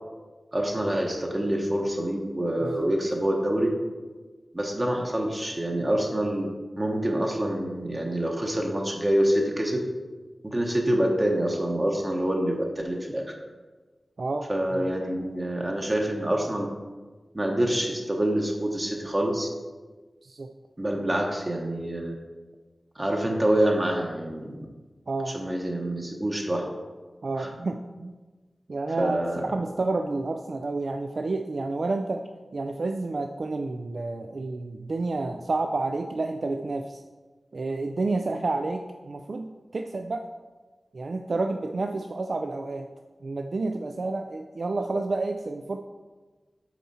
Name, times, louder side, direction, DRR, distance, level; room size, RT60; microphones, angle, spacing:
voice 1, 0.5-3.7 4.5-6.5 6.8-9.8 10.4-13.2 14.5-16.7 17.3-19.5 20.8-22.1 23.0-24.7 25.3-26.7 27.4-27.5 29.0-29.4, right 1 dB, 30° right, 0 dB, 0.9 m, -26 dB
voice 2, 27.2-28.1 28.7-29.2 29.5-32.2 32.5-37.0 37.5-39.5 39.7-40.3 40.9-42.9 43.2-45.8, right 3 dB, 65° right, 5 dB, 0.3 m, -30 dB
7.2 x 4.3 x 4.2 m, 1.3 s
wide cardioid pair, 60°, 0 cm